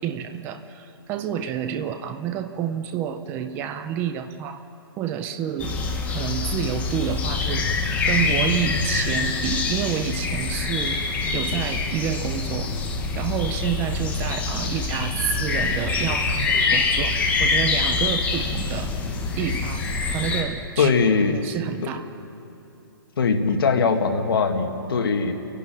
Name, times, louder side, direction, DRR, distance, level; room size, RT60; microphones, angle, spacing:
voice 1, 0.0-4.6 5.0-5.8 6.1-7.7 8.0-12.7 13.2-17.1 17.4-18.9 19.3-20.9 21.3-22.1, right 9 dB, 15° right, 10 dB, 0.6 m, -29 dB
sound 1, 5.6-20.4, left 4 dB, 10° left, 1.3 m, -25 dB
voice 2, 20.8-21.4 21.8-21.9 23.2-25.3, left 5 dB, 75° left, 4 dB, 2.1 m, -21 dB
28.5 x 11.5 x 9.2 m, 3.0 s
hypercardioid pair, 165°, 12 cm